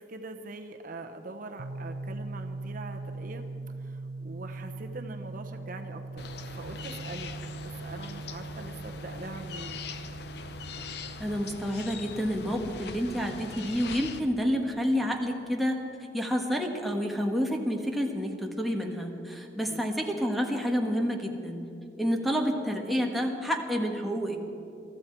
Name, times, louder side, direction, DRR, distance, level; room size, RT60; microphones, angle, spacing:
voice 1, 0.1-3.5 3.8-7.3 7.8-9.8 19.7-19.9, right 2 dB, 50° right, 5 dB, 0.9 m, -43 dB
sound 1, 1.6-15.2, right 3 dB, 80° right, 0.6 m, -42 dB
sound 2, 6.2-14.2, left 5 dB, 65° left, 0.8 m, -42 dB
voice 2, 11.2-15.8 16.1-21.6 22.0-24.4, equal, ahead, 0 dB, 1.4 m, -29 dB
22.5 x 13.5 x 4.6 m, 2.6 s
head